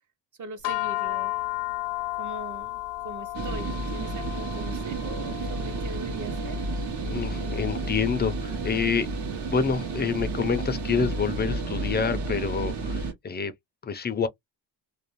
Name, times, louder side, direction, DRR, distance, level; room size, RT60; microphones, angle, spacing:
voice 1, 0.4-1.3 2.2-6.6, right 2 dB, 45° right, 0.8 m, -41 dB
sound 1, 0.6-11.1, left 18 dB, 80° left, 0.6 m, -35 dB
sound 2, 3.3-13.1, right 3 dB, 70° right, 1.0 m, -31 dB
voice 2, 7.1-9.1 9.5-13.5 13.8-14.3, left 6 dB, 25° left, 0.3 m, -27 dB
2.5 x 2.0 x 2.9 m
cardioid pair, 130°, 42 cm